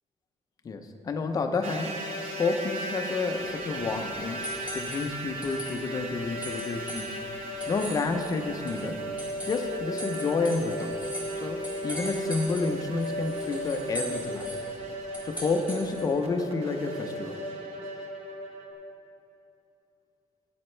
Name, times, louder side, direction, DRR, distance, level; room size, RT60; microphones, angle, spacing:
voice 1, 0.6-2.1 2.4-4.5 4.7-7.2 7.7-9.0 9.4-11.0 11.4-14.5 15.2-17.4, left 3 dB, 30° left, 5 dB, 0.6 m, -30 dB
sound 1, 1.6-18.7, equal, 50° right, 1.2 m, -36 dB
sound 2, 3.4-16.2, equal, 10° right, 1.9 m, -42 dB
14.5 x 8.6 x 3.3 m, 2.8 s
cardioid pair, 180°, 13 cm